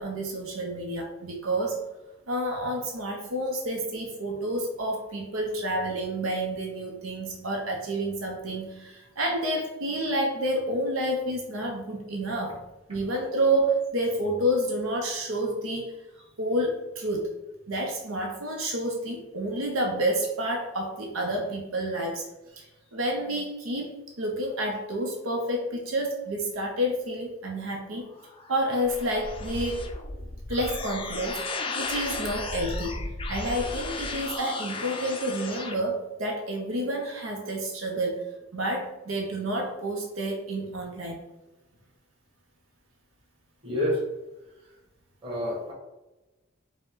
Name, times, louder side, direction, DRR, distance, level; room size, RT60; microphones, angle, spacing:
voice 1, 0.0-1.8 2.3-12.6 12.9-16.0 16.4-17.4 17.7-22.3 22.5-22.6 22.9-28.1 28.5-29.9 30.5-33.0 33.3-38.2 38.5-41.2, right 1 dB, 80° right, 1 dB, 0.7 m, -29 dB
sound 1, 28.1-35.7, left 3 dB, 25° left, 0.4 m, -35 dB
voice 2, 43.6-44.0 44.6-44.7 45.2-45.7, left 1 dB, 25° right, -5 dB, 1.5 m, -28 dB
5.2 x 2.2 x 3.7 m, 1.0 s
head